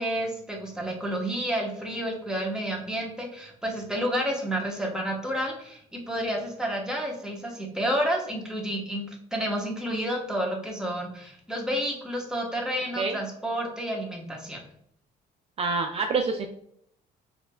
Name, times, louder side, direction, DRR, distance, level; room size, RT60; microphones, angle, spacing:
voice 1, 0.0-14.6, equal, 5° right, -1 dB, 0.9 m, -30 dB
voice 2, 15.6-16.5, right 4 dB, 35° right, 3 dB, 0.3 m, -26 dB
5.0 x 2.5 x 2.2 m, 0.69 s
cardioid pair, 110°, 17 cm